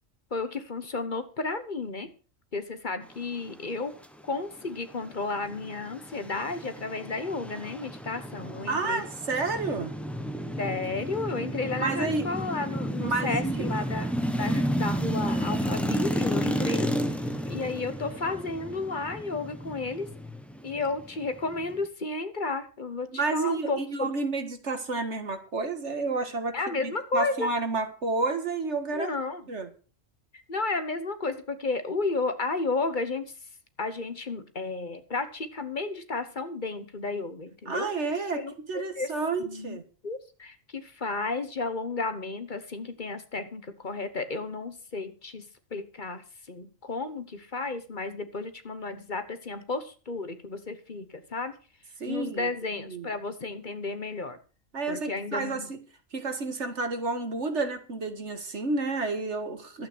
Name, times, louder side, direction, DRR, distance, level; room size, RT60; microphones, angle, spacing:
voice 1, 0.3-2.1 2.5-3.9 4.2-9.0 10.6-14.1 14.4-16.9 17.5-20.1 20.6-24.1 26.5-27.5 28.9-29.4 30.5-33.2 33.8-39.1 39.4-45.4 45.7-51.5 52.1-54.4 54.9-55.7, left 3 dB, 40° left, 10 dB, 1.3 m, -33 dB
sound 1, 5.1-21.9, equal, ahead, 1.2 m, -32 dB
voice 2, 8.7-9.9 11.8-12.3 13.0-13.7 23.1-29.1 29.5-29.7 37.7-38.4 38.7-39.8 52.0-53.1 54.7-55.8 56.1-59.9, right 3 dB, 60° right, 8 dB, 1.9 m, -30 dB
12.5 x 8.8 x 6.1 m, 0.37 s
omnidirectional pair, 1.4 m